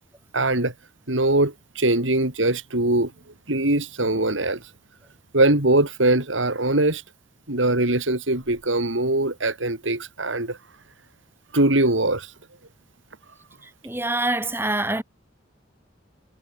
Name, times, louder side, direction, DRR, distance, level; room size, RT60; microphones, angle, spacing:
voice 1, 0.3-0.7 1.1-3.1 3.5-4.6 5.3-7.0 7.5-10.6 11.5-12.3, right 2 dB, 90° right, 4.0 m, -21 dB
voice 2, 13.8-15.0, right 2 dB, 10° right, 4.6 m, -25 dB
head